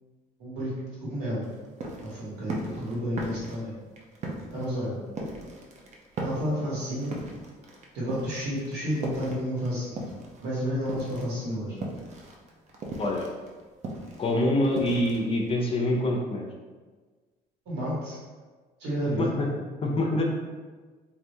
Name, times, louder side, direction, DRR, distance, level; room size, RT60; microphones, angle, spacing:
voice 1, 0.4-0.7 1.0-1.4 2.0-3.7 4.5-4.9 6.2-7.2 7.9-10.0 10.4-11.7 17.6-18.2 18.8-19.3, equal, 80° right, -7 dB, 1.5 m, -31 dB
sound 1, 1.4-10.5 10.8-15.7, right 2 dB, 40° right, 0.6 m, -38 dB
voice 2, 14.2-16.4 19.0-19.5 19.8-20.2, left 1 dB, 35° left, 0 dB, 0.6 m, -25 dB
3.3 x 2.6 x 2.7 m, 1.4 s
cardioid pair, 110°, 17 cm